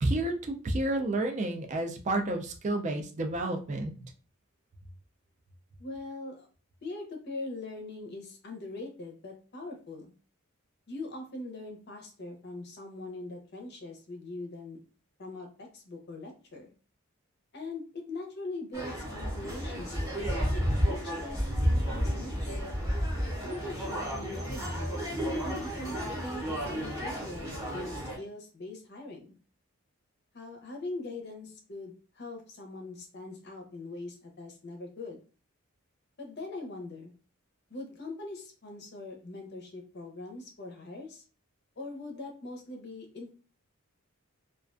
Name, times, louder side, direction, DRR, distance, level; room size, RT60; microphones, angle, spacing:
voice 1, 0.0-3.9, right 2 dB, 35° right, 4 dB, 0.3 m, -30 dB
voice 2, 5.8-6.5 6.8-10.1 10.9-14.8 15.2-16.7 17.5-20.4 20.9-22.6 23.4-24.9 25.4-29.3 30.3-35.2 36.2-37.1 37.7-41.2 41.8-43.4, left 2 dB, 50° left, 2 dB, 0.6 m, -42 dB
sound 1, 18.7-28.2, equal, 15° right, 0.7 m, -32 dB
2.3 x 2.2 x 2.4 m, 0.36 s
head